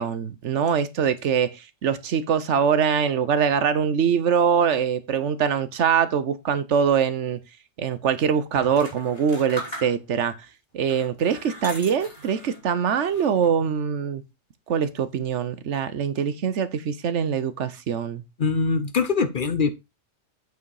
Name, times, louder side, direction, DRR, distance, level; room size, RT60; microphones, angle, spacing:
voice 1, 0.0-7.4 7.8-10.3 10.7-14.2 14.7-18.2, right 7 dB, 70° right, 1.1 m, -23 dB
sound 1, 8.5-10.3 10.8-12.6 13.0-13.7, equal, 30° left, 2.9 m, -39 dB
voice 2, 18.4-19.7, left 4 dB, 50° left, 0.8 m, -23 dB
8.2 x 5.0 x 4.7 m
omnidirectional pair, 1.3 m